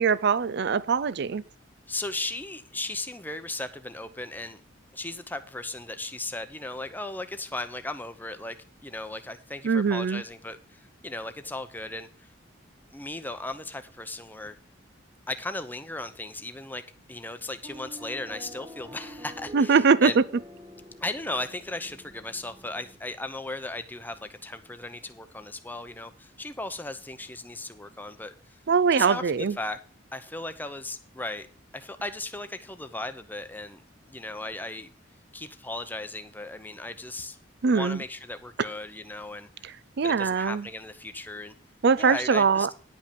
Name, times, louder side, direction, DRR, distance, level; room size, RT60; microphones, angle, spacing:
voice 1, 0.0-1.4 9.6-10.2 19.5-20.2 28.7-29.6 37.6-38.0 38.6-38.7 39.6-40.7 41.8-42.7, right 5 dB, 60° right, 0.5 m, -22 dB
voice 2, 1.9-4.6 4.9-8.6 8.8-12.3 12.9-14.6 15.3-16.8 17.1-20.2 21.0-28.3 28.9-29.8 30.1-31.5 31.7-33.8 34.1-34.9 35.3-37.4 37.7-39.7 40.0-41.5 42.0-42.7, left 2 dB, 10° left, 0.7 m, -36 dB
sound 1, 17.6-23.0, equal, 20° right, 1.4 m, -46 dB
10.5 x 5.3 x 6.9 m
head